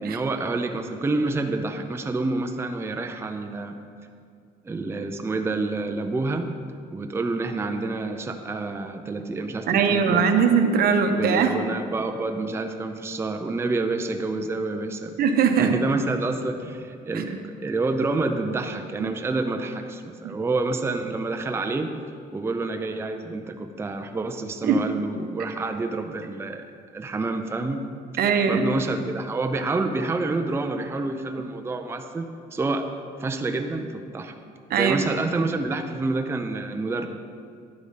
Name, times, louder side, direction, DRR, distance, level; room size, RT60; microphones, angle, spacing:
voice 1, 0.0-3.8 4.6-6.5 6.9-10.2 11.1-15.1 15.6-21.9 22.3-26.7 26.9-27.8 28.5-32.9 33.2-34.3 34.8-37.1, right 3 dB, 15° right, 6 dB, 0.5 m, -28 dB
voice 2, 9.7-11.6 15.2-15.7 17.1-17.4 19.0-19.1 20.2-20.3 24.6-24.8 28.2-28.7 34.7-35.1, right 6 dB, 65° right, 6 dB, 0.8 m, -21 dB
10.5 x 4.9 x 5.5 m, 2.3 s
cardioid pair, 110°, 17 cm